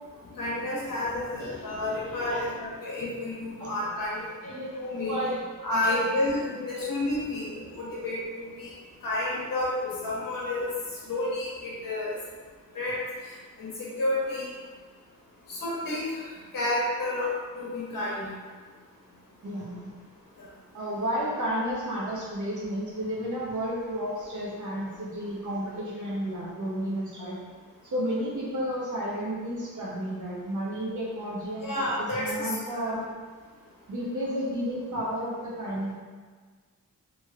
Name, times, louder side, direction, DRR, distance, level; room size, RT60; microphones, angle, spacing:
voice 1, 0.4-4.2 4.8-5.2 5.6-8.7 9.0-10.7 11.1-12.2 12.7-13.0 13.6-14.5 15.5-16.3 16.5-18.3 31.6-33.0, left 1 dB, 80° left, -6 dB, 1.0 m, -30 dB
voice 2, 4.2-5.4 5.8-6.0 6.5-6.9 7.7-8.0 19.4-19.9 20.7-27.4 27.8-33.0 33.9-35.9, equal, 65° right, -5 dB, 0.8 m, -32 dB
3.0 x 2.9 x 2.4 m, 1.5 s
wide cardioid pair, 75°, 33 cm